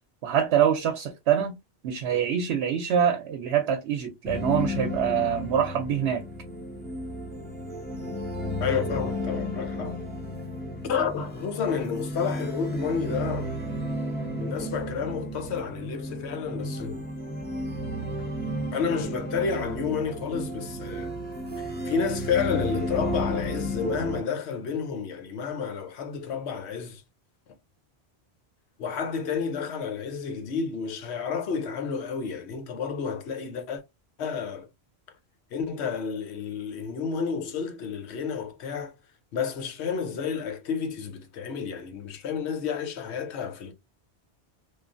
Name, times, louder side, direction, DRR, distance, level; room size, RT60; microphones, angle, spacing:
voice 1, 0.2-1.5 1.8-6.2, right 8 dB, 80° right, 0.9 m, -25 dB
sound 1, 4.2-24.2, equal, 10° left, 0.7 m, -33 dB
voice 2, 8.6-10.0 10.8-13.5 14.4-17.0 18.7-21.1 21.6-27.0 28.8-33.8 34.2-34.7 35.5-38.9 39.3-43.7, left 6 dB, 90° left, 1.0 m, -30 dB
3.1 x 2.3 x 2.5 m
omnidirectional pair, 1.1 m